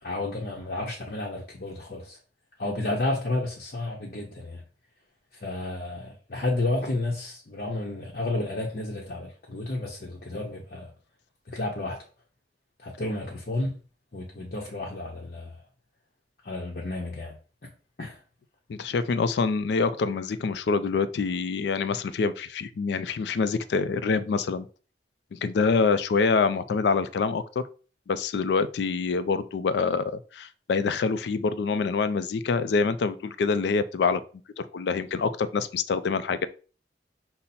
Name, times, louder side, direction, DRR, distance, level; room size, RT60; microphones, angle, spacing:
voice 1, 0.0-2.2 2.6-4.6 5.3-10.9 11.5-12.0 12.8-13.8 14.1-15.6 16.4-17.4 17.6-17.7 18.0-18.2, left 2 dB, 55° left, 0.7 m, -31 dB
voice 2, 18.7-24.7 25.3-27.6 28.1-34.2 34.6-36.5, left 4 dB, 75° left, 0.3 m, -26 dB
5.4 x 2.0 x 4.1 m
head